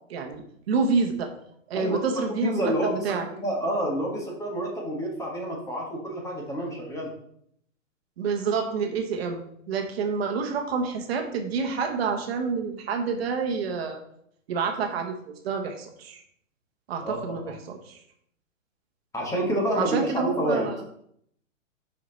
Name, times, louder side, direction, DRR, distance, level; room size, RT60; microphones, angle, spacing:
voice 1, 0.7-1.3 1.7-3.2 8.2-9.4 9.7-14.0 14.5-15.1 15.4-16.2 16.9-18.0 19.8-20.8, right 5 dB, 50° right, 5 dB, 1.2 m, -28 dB
voice 2, 2.3-7.1 17.0-17.5 19.1-20.7, equal, 10° left, -1 dB, 1.5 m, -29 dB
7.2 x 5.8 x 4.0 m, 0.69 s
hypercardioid pair, 140°, 39 cm